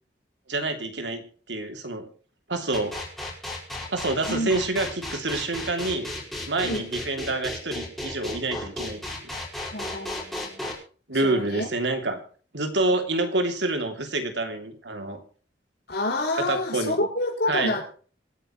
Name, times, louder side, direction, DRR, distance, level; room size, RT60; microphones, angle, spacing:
voice 1, 0.5-1.2 1.5-2.1 2.5-2.9 3.9-6.1 6.5-9.3 11.1-12.2 12.5-15.2 16.5-17.0 17.5-17.8, right 2 dB, 80° right, 6 dB, 3.0 m, -27 dB
sound 1, 2.7-10.7, left 1 dB, ahead, 5.1 m, -34 dB
voice 2, 9.7-10.6 11.2-11.7 15.9-17.8, left 2 dB, 65° left, 1 dB, 5.7 m, -28 dB
26.5 x 9.7 x 3.2 m, 0.41 s
head